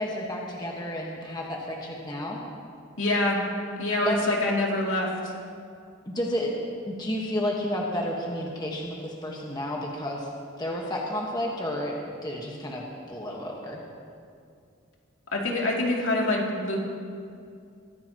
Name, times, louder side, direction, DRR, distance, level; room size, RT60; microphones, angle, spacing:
voice 1, 0.0-2.4 4.0-4.3 6.0-6.5 6.9-10.3 10.6-11.9 12.2-13.8, left 1 dB, 20° left, -2 dB, 1.4 m, -31 dB
voice 2, 3.0-3.4 3.8-5.1 15.3-16.8, left 1 dB, 70° left, -2 dB, 2.7 m, -25 dB
23.0 x 15.0 x 3.0 m, 2.4 s
head